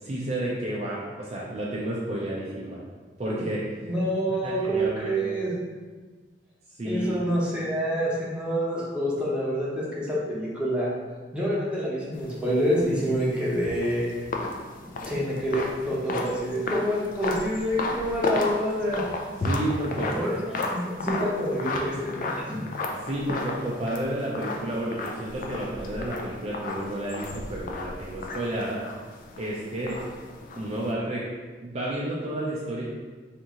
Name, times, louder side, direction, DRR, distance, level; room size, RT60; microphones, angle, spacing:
voice 1, 0.0-2.8 3.2-3.6 4.4-5.2 6.8-7.2 19.4-20.6 23.1-28.8 29.4-30.0 30.6-31.2 31.6-32.8, right 1 dB, 40° right, -5 dB, 0.4 m, -31 dB
voice 2, 3.8-5.5 6.8-10.9 11.3-14.1 15.1-19.0 20.1-20.4 20.7-22.6, equal, 5° right, -7 dB, 0.8 m, -27 dB
sound 1, 12.1-30.9, left 2 dB, 50° left, 0.4 m, -34 dB
3.6 x 2.5 x 2.9 m, 1.4 s
head